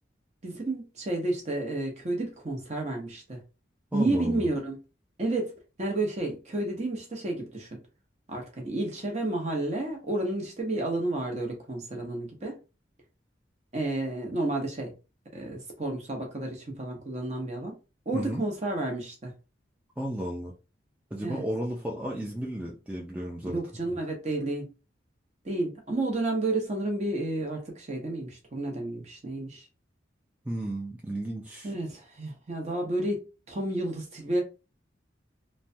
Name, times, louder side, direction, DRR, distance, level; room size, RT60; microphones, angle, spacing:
voice 1, 0.4-3.4 3.9-4.8 5.2-5.5 5.8-7.8 8.3-12.5 13.7-14.9 15.3-17.7 18.1-19.3 21.2-21.4 23.4-24.7 25.4-29.6 31.6-34.4, right 2 dB, 35° right, 0.8 m, -31 dB
voice 2, 3.9-4.5 18.1-18.4 20.0-20.5 21.1-23.6 23.9-24.0 30.4-31.7, right 1 dB, 5° right, 0.4 m, -33 dB
3.1 x 2.2 x 2.6 m
head